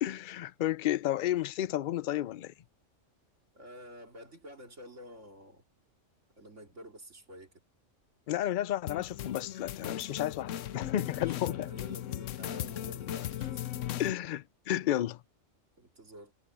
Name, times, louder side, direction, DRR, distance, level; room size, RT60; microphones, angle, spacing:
voice 1, 0.0-2.5 8.3-11.7 14.0-15.2, left 12 dB, 60° left, 0.5 m, -32 dB
voice 2, 3.5-5.7 6.4-7.5 11.0-13.6 15.8-16.3, equal, 70° right, 4.1 m, -50 dB
sound 1, 8.9-14.1, left 12 dB, 85° left, 1.0 m, -37 dB
omnidirectional pair, 1.3 m